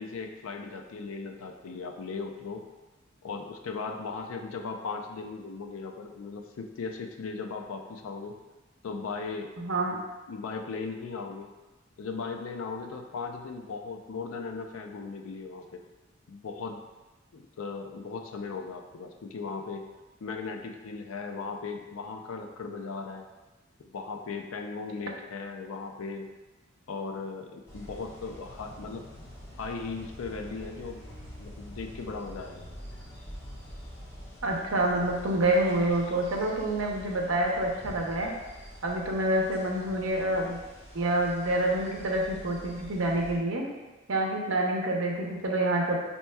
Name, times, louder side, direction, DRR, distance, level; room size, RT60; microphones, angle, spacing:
voice 1, 0.0-2.6 3.2-8.4 8.8-9.5 9.9-10.0 10.3-11.5 12.0-15.8 16.3-16.8 17.3-19.8 20.2-23.3 23.8-26.3 26.9-29.1 29.6-31.0 31.4-32.7, left 4 dB, 90° left, 4 dB, 0.4 m, -37 dB
voice 2, 9.6-9.9 34.4-38.3 38.8-40.6 40.9-43.6 44.1-46.0, right 1 dB, 80° right, -1 dB, 0.7 m, -27 dB
sound 1, 27.7-43.4, equal, 15° left, 1.1 m, -46 dB
5.3 x 2.9 x 2.2 m, 1.2 s
head